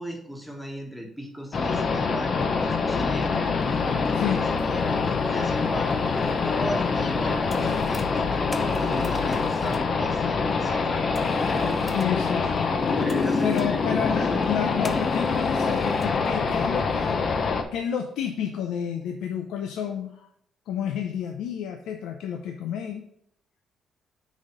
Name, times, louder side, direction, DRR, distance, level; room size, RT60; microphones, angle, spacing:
voice 1, 0.0-11.8 13.0-13.8 14.2-14.4, equal, 5° left, 0 dB, 1.5 m, -36 dB
sound 1, 1.5-17.6, left 4 dB, 50° left, 0.8 m, -25 dB
sound 2, 3.7-3.9 4.6-4.9 5.1-6.3 7.0-9.9 11.1-12.2 13.1-13.8 14.8-16.2 16.5-16.7, left 3 dB, 20° left, 0.6 m, -41 dB
voice 2, 11.9-13.0 13.4-17.2 17.7-20.3 20.7-23.0, left 8 dB, 85° left, 5 dB, 0.6 m, -30 dB
6.2 x 4.2 x 5.2 m, 0.68 s
cardioid pair, 90°, 0 cm